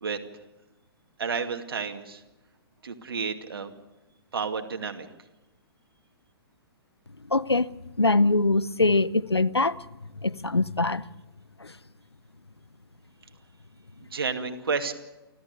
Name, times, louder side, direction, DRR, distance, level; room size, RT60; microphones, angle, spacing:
voice 1, 1.2-2.2 2.8-3.7 4.3-5.1 14.1-14.9, right 5 dB, 65° right, 2.3 m, -31 dB
voice 2, 7.3-7.7 8.0-9.8 10.2-11.0 11.6-11.7, left 2 dB, 90° left, 0.7 m, -23 dB
30.0 x 14.0 x 6.9 m
figure-of-eight pair, 120°, 13 cm